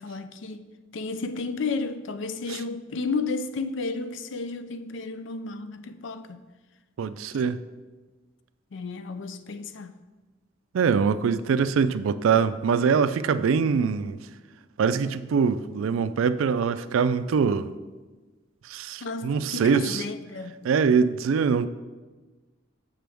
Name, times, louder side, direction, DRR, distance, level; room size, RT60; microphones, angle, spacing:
voice 1, 0.0-6.4 8.7-10.0 19.0-20.6, left 4 dB, 65° left, 0.4 m, -32 dB
voice 2, 7.0-7.6 10.7-14.2 14.8-17.7 18.7-20.0 20.6-21.7, right 6 dB, 80° right, 0.3 m, -23 dB
7.6 x 5.9 x 3.4 m
head